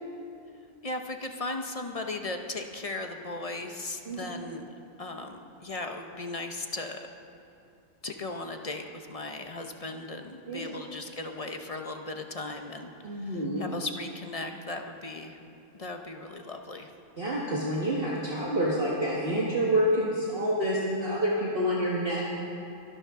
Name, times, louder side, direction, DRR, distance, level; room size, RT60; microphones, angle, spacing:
voice 1, 0.8-4.7 5.0-7.1 8.0-15.4 15.7-16.9, left 2 dB, 30° left, 4 dB, 0.7 m, -37 dB
voice 2, 13.0-13.7 17.2-22.4, equal, 40° right, -5 dB, 1.7 m, -28 dB
23.0 x 12.5 x 3.7 m, 2.6 s
omnidirectional pair, 1.5 m